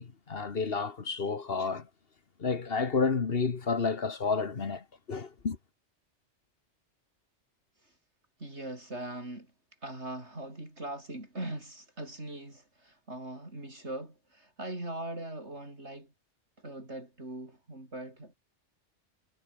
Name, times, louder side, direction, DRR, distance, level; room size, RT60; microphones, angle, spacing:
voice 1, 0.0-1.9 2.4-5.6, left 4 dB, 55° left, 1.6 m, -30 dB
voice 2, 8.4-9.5 9.8-16.1 16.6-18.4, right 1 dB, 70° right, 7.0 m, -41 dB
omnidirectional pair, 1.2 m